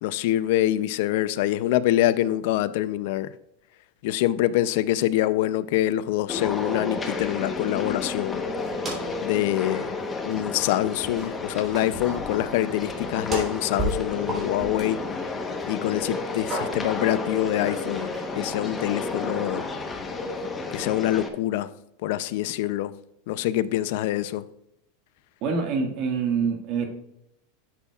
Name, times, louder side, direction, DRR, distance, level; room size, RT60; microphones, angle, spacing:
voice 1, 0.0-3.3 4.0-8.4 9.2-9.9 10.2-15.0 15.7-19.6 20.7-21.7 22.0-22.9 23.3-24.4, left 14 dB, 65° left, 0.5 m, -25 dB
sound 1, 6.3-21.3, left 3 dB, 15° left, 1.0 m, -31 dB
sound 2, 8.6-9.3 9.6-9.7 10.3-10.7 11.0-15.6 16.0-17.0 17.6-18.3, right 1 dB, 25° right, 3.3 m, -35 dB
voice 2, 25.4-26.9, right 5 dB, 50° right, 1.8 m, -25 dB
11.0 x 7.2 x 2.4 m
supercardioid pair, 135°, 0 cm